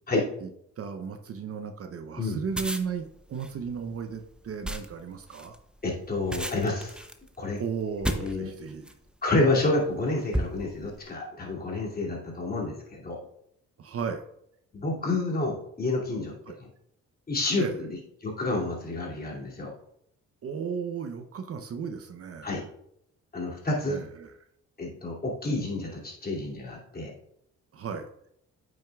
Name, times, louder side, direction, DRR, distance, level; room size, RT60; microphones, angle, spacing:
voice 1, 0.8-5.6 7.6-8.9 13.8-14.2 16.5-16.6 17.6-17.8 20.4-22.5 23.8-24.3 27.7-28.1, right 6 dB, 50° right, 7 dB, 0.7 m, -35 dB
sound 1, 2.4-9.1 9.7-9.9 10.3-11.0, right 1 dB, 5° right, 0.7 m, -34 dB
voice 2, 5.8-7.0 7.4-7.6 8.2-8.5 9.2-13.2 14.7-16.3 17.3-17.9 18.2-19.7 22.4-22.6 23.3-24.0 24.8-27.1, left 2 dB, 30° left, -3 dB, 2.6 m, -29 dB
8.6 x 6.4 x 2.3 m, 0.73 s
cardioid pair, 90°, 30 cm